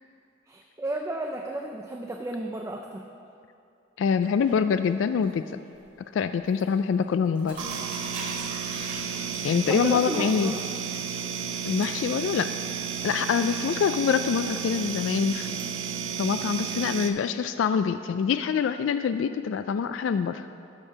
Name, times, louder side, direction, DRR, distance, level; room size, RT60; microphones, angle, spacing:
voice 1, 0.5-3.1 9.7-10.6, right 1 dB, 15° right, 2 dB, 0.4 m, -33 dB
voice 2, 4.0-5.6 6.1-7.6 9.4-10.5 11.7-12.5 13.0-15.6 16.2-20.5, left 6 dB, 75° left, 10 dB, 0.3 m, -25 dB
sound 1, 4.1-5.3 5.6-6.0 6.3-6.7 7.0-15.6, right 2 dB, 45° right, 2.1 m, -43 dB
sound 2, 7.6-17.1, right 7 dB, 80° right, 0.7 m, -32 dB
12.5 x 4.5 x 6.1 m, 2.6 s
head